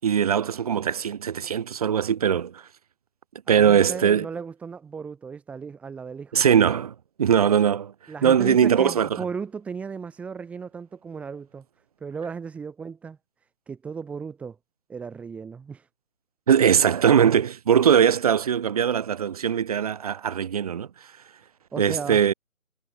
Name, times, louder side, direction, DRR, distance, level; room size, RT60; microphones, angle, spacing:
voice 1, 0.0-2.6 3.5-4.3 6.3-7.9 8.2-9.2 16.5-20.9 21.8-22.3, right 8 dB, 25° right, 7.3 m, -21 dB
voice 2, 3.5-6.4 8.1-11.6 12.0-13.2 13.7-14.6 14.9-15.9 21.7-22.2, right 5 dB, 5° right, 4.7 m, -35 dB
figure-of-eight pair, 165°, 41 cm